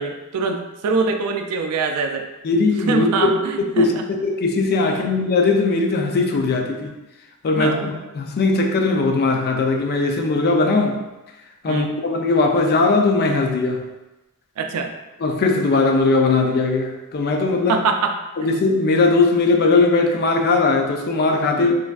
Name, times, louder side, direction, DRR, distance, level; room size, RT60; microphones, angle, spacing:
voice 1, 0.0-2.3 2.9-4.0 7.6-7.9 11.7-11.9 14.6-14.9 17.7-18.1 21.5-21.8, right 4 dB, 85° right, 5 dB, 0.3 m, -23 dB
voice 2, 2.4-3.3 3.6-4.0 4.2-6.9 7.4-11.0 11.6-13.9 15.2-17.8 18.4-21.7, left 3 dB, 45° left, 3 dB, 0.3 m, -19 dB
3.2 x 2.5 x 2.3 m, 1.0 s
head